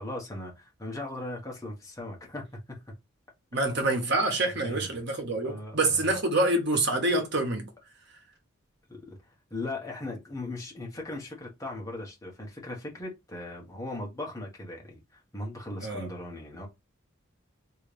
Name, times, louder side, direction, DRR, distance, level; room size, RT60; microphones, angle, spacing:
voice 1, 0.0-2.4 2.7-2.8 4.6-5.0 5.4-6.1 8.9-16.7, left 2 dB, 15° left, 1.2 m, -38 dB
voice 2, 3.5-7.7 15.8-16.1, right 2 dB, 55° right, 1.2 m, -26 dB
3.3 x 2.8 x 3.3 m
head